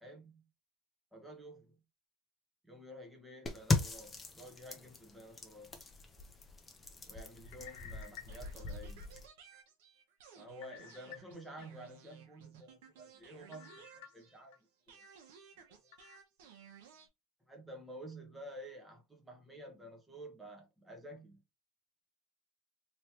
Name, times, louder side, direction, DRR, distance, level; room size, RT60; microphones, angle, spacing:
voice 1, 0.0-0.4 1.1-1.7 2.6-5.8 7.0-9.1 10.3-14.5 14.9-15.0 15.8-15.9 17.5-21.4, right 1 dB, 5° right, 1.2 m, -51 dB
sound 1, 3.5-9.3, left 3 dB, 15° left, 0.8 m, -39 dB
sound 2, 7.4-9.2 9.7-9.8 10.6-11.7 12.1-12.2 13.5-14.6 15.0-15.1 15.9-16.2, left 10 dB, 75° left, 0.9 m, -54 dB
sound 3, 8.3-14.5 14.9-17.1, right 7 dB, 75° right, 1.0 m, -58 dB
3.1 x 3.1 x 2.9 m
supercardioid pair, 115°, 0 cm